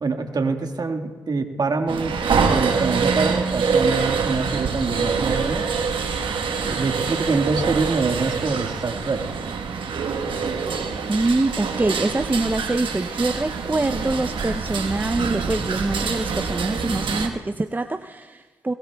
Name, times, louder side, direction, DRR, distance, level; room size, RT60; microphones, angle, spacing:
voice 1, 0.0-5.6 6.6-9.2, right 4 dB, 50° right, 5 dB, 1.6 m, -25 dB
sound 1, 1.9-17.3, right 5 dB, 65° right, 1.2 m, -25 dB
voice 2, 11.1-18.7, right 2 dB, 20° right, 7 dB, 0.5 m, -24 dB
21.5 x 18.0 x 2.3 m, 1.3 s
supercardioid pair, 45°, 9 cm